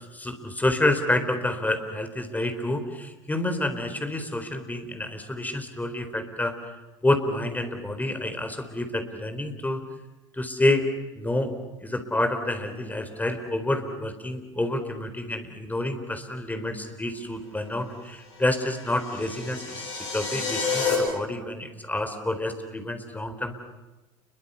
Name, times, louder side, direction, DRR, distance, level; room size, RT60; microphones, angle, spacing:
voice 1, 0.1-6.5 7.0-9.8 10.3-10.8 11.2-11.5 11.8-23.6, left 1 dB, 10° left, 8 dB, 4.0 m, -28 dB
sound 1, 18.4-20.9, left 5 dB, 75° left, 7.1 m, -30 dB
29.5 x 22.5 x 7.0 m, 1.1 s
hypercardioid pair, 70°, 16 cm